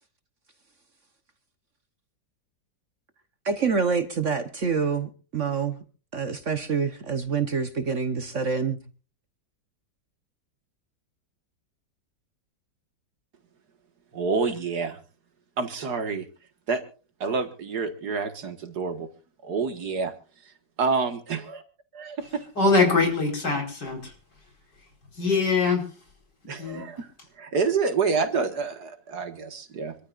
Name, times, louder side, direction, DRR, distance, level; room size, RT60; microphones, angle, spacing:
voice 1, 3.4-5.8 6.1-8.8, right 5 dB, 45° right, 1.3 m, -26 dB
voice 2, 14.1-15.0 15.6-16.3 16.7-16.8 17.2-19.1 19.4-20.1 20.8-21.6 21.9-22.5 26.5-27.1 27.4-30.0, right 4 dB, 65° right, 2.2 m, -28 dB
voice 3, 22.6-24.1 25.1-25.9 26.6-26.8, left 4 dB, 70° left, 5.3 m, -23 dB
26.0 x 13.5 x 2.5 m
omnidirectional pair, 1.9 m